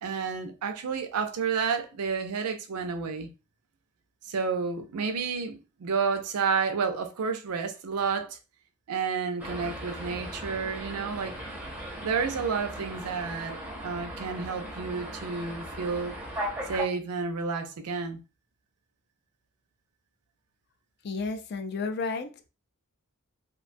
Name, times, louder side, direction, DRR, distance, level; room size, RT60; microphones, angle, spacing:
voice 1, 0.0-3.3 4.3-8.4 8.9-11.4 12.0-16.1 16.7-18.2, right 5 dB, 85° right, 0.5 m, -30 dB
sound 1, 9.4-16.8, equal, 5° right, 0.5 m, -38 dB
voice 2, 21.0-22.5, left 4 dB, 50° left, 0.4 m, -32 dB
2.4 x 2.2 x 2.5 m
head